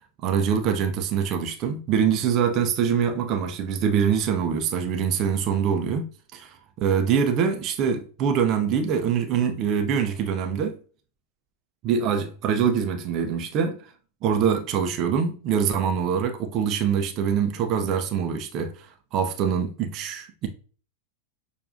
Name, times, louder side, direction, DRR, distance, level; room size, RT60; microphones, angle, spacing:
voice 1, 0.2-6.1 6.3-6.4 6.8-10.8 11.8-13.8 14.2-18.9 19.1-20.5, right 7 dB, 35° right, 0.6 m, -24 dB
6.5 x 2.5 x 2.6 m
figure-of-eight pair, 90°, 0 cm